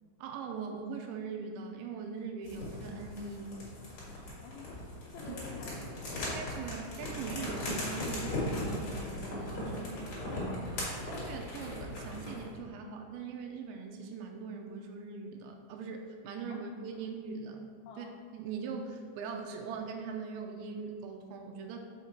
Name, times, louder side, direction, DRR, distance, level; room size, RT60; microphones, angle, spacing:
voice 1, 0.2-3.6 5.3-5.4 6.3-10.0 10.2-10.7 11.1-17.7 18.0-18.1 18.3-21.8, right 5 dB, 85° right, 3 dB, 2.6 m, -41 dB
sound 1, 2.4-12.5, left 1 dB, 55° left, 1.9 m, -38 dB
voice 2, 4.4-4.7 5.1-6.3 16.5-16.6 16.9-17.0 17.9-18.1, left 5 dB, 85° left, 0 dB, 2.7 m, -50 dB
6.0 x 5.6 x 4.3 m, 2.1 s
omnidirectional pair, 5.7 m